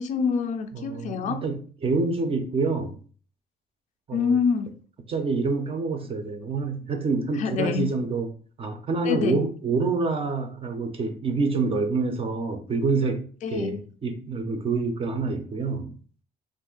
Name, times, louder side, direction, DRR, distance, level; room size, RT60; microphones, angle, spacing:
voice 1, 0.0-1.4 4.1-4.7 7.4-7.9 9.0-9.4 13.4-13.8, left 6 dB, 45° left, 6 dB, 0.4 m, -26 dB
voice 2, 0.7-2.9 4.1-4.3 5.1-8.3 8.6-13.2 13.5-16.0, right 4 dB, 35° right, 5 dB, 0.5 m, -27 dB
2.5 x 2.4 x 3.7 m, 0.43 s
cardioid pair, 110°, 17 cm